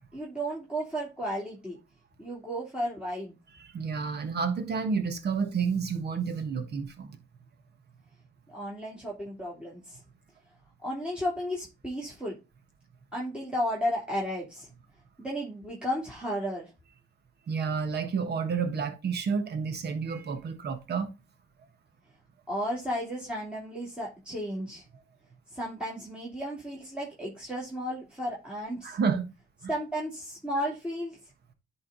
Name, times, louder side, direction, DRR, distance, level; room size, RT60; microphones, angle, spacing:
voice 1, 0.1-1.8 2.2-3.4 8.5-10.0 10.8-12.4 13.1-14.7 15.2-16.7 22.5-24.8 25.5-29.0 29.7-31.2, equal, 5° right, 2.7 m, -33 dB
voice 2, 3.7-7.2 17.5-21.1 28.8-29.2 29.6-29.7, right 5 dB, 55° right, 1.5 m, -30 dB
10.5 x 3.7 x 4.0 m
cardioid pair, 90°, 20 cm